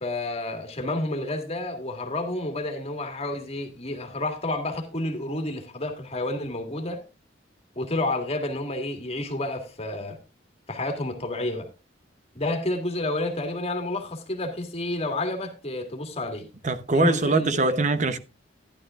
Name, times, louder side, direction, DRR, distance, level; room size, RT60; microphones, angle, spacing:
voice 1, 0.0-7.0 7.8-10.2 10.7-11.7 12.4-16.5 17.0-17.8, left 2 dB, 35° left, 1.8 m, -30 dB
voice 2, 16.6-18.2, right 2 dB, 40° right, 0.8 m, -22 dB
12.0 x 11.0 x 2.4 m
head